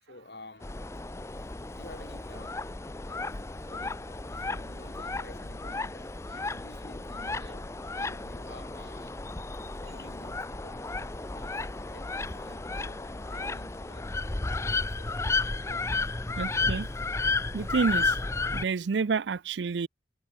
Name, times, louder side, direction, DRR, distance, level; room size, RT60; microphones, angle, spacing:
voice 1, 0.0-0.8 1.7-2.7 3.0-9.2 9.8-11.6 11.9-14.2 14.6-16.3, left 2 dB, 70° left, 3.0 m, -52 dB
sound 1, 0.6-18.6, left 3 dB, 15° left, 0.5 m, -33 dB
sound 2, 0.9-1.1 3.4-7.6 8.6-8.7 9.9-10.0 11.6-13.1 13.3-13.9 15.7-17.1 17.6-17.7 18.0-18.1, right 2 dB, 60° right, 7.9 m, -69 dB
voice 2, 16.4-16.9 17.5-18.2 18.5-19.9, right 5 dB, 85° right, 0.5 m, -29 dB
head